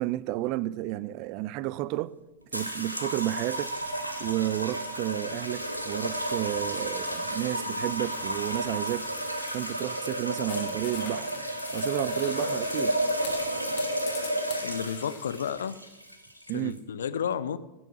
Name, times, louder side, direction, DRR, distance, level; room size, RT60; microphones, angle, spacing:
voice 1, 0.0-2.1 2.5-3.7 4.2-9.1 9.5-11.3 11.7-13.0 16.5-16.8, right 16 dB, 45° right, 0.4 m, -31 dB
sound 1, 2.5-16.8, right 1 dB, 85° right, 1.4 m, -32 dB
sound 2, 8.9-15.5, left 7 dB, 45° left, 2.7 m, -45 dB
voice 2, 14.6-15.8 16.5-17.6, left 8 dB, 65° left, 0.6 m, -31 dB
15.5 x 7.1 x 6.2 m
figure-of-eight pair, 90°, 0 cm